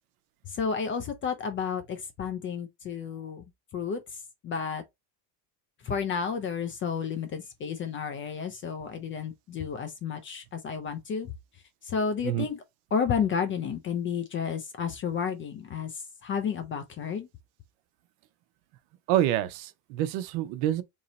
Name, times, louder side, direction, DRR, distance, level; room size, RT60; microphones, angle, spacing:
voice 1, 0.5-3.4 3.7-4.8 5.8-11.3 11.8-12.6 12.9-17.3, left 6 dB, 30° left, 0.3 m, -31 dB
voice 2, 19.1-20.8, right 12 dB, 65° right, 0.7 m, -27 dB
3.0 x 2.7 x 3.9 m
supercardioid pair, 130°, 49 cm